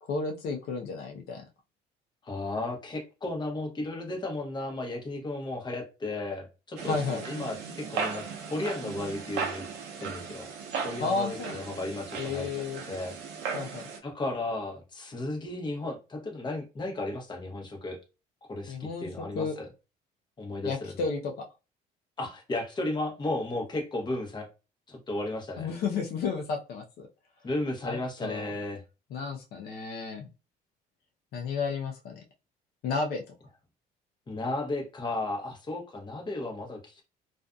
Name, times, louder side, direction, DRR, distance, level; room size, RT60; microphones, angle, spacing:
voice 1, 0.0-1.4 6.9-7.2 11.0-11.6 12.2-12.8 13.5-13.9 18.7-19.6 20.6-21.5 25.6-27.1 27.8-28.5 29.1-30.3 31.3-32.2 32.8-33.2, left 4 dB, 65° left, 0.6 m, -32 dB
voice 2, 2.2-7.0 7.2-8.2 8.5-9.6 10.0-10.5 10.8-12.5 12.9-13.2 14.0-18.0 18.4-19.7 20.4-21.1 22.2-24.5 24.9-25.7 27.4-28.8 34.3-37.0, left 2 dB, 25° left, 0.9 m, -34 dB
sound 1, 6.8-14.0, right 6 dB, 80° right, 0.6 m, -37 dB
2.5 x 2.5 x 2.2 m
cardioid pair, 110°, 17 cm